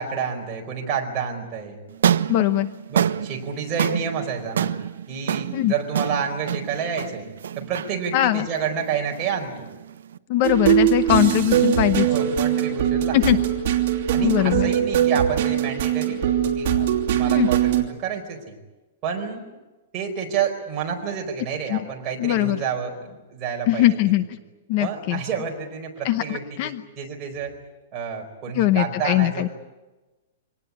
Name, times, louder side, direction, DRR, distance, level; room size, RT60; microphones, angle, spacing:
voice 1, 0.0-1.8 2.9-4.7 5.1-7.3 7.6-9.7 11.1-11.2 12.1-13.2 14.1-18.6 19.0-19.5 19.9-24.0 24.8-27.5 27.9-29.5, right 6 dB, 20° right, 1 dB, 4.6 m, -29 dB
sound 1, 1.9-10.2, right 9 dB, 90° right, 0.9 m, -27 dB
voice 2, 2.3-2.7 5.5-5.7 8.1-8.5 10.3-12.1 13.1-13.4 14.2-14.7 17.3-17.5 21.7-21.8 22.2-22.6 23.7-24.4 24.7-25.2 26.0-26.8 28.5-29.5, left 14 dB, 35° left, 12 dB, 0.8 m, -21 dB
sound 2, 10.4-17.8, right 10 dB, 45° right, 3.0 m, -21 dB
25.5 x 19.0 x 9.7 m, 1.1 s
supercardioid pair, 175°, 0 cm